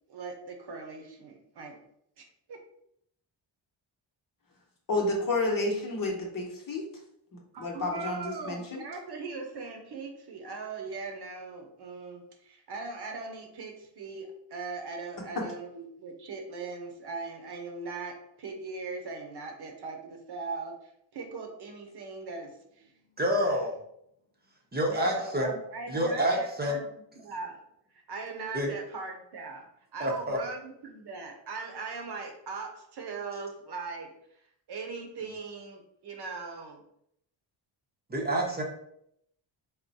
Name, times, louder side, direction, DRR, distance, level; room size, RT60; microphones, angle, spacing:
voice 1, 0.1-1.8 2.2-2.6 7.5-20.8 21.1-22.5 22.8-22.9 24.9-27.6 27.9-29.7 29.9-34.1 34.7-36.8, right 4 dB, 60° right, 3 dB, 0.8 m, -40 dB
voice 2, 4.9-6.8 7.3-8.8 15.4-15.5, left 2 dB, 45° left, -1 dB, 0.9 m, -30 dB
voice 3, 23.2-23.7 24.7-25.5 25.9-26.8 28.5-28.7 30.0-30.4 35.2-35.3 38.1-38.6, equal, 20° right, 0 dB, 0.7 m, -28 dB
3.7 x 2.1 x 4.0 m, 0.73 s
cardioid pair, 115°, 46 cm